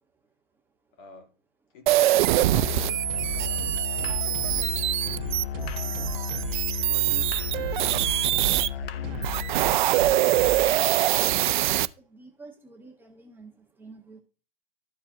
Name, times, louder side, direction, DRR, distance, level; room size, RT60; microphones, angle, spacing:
voice 1, 0.9-1.4 1.7-3.1 3.3-6.4 6.9-8.1, left 5 dB, 45° left, 1.9 m, -50 dB
sound 1, 1.9-8.7 9.1-11.9, right 14 dB, 55° right, 0.4 m, -24 dB
Musical instrument, 2.5-9.6, left 10 dB, 80° left, 0.6 m, -34 dB
sound 2, 3.0-10.8, right 5 dB, 40° right, 1.8 m, -37 dB
voice 2, 8.9-10.4 11.9-14.2, right 3 dB, 5° right, 0.9 m, -50 dB
13.0 x 4.4 x 2.6 m
hypercardioid pair, 130°, 29 cm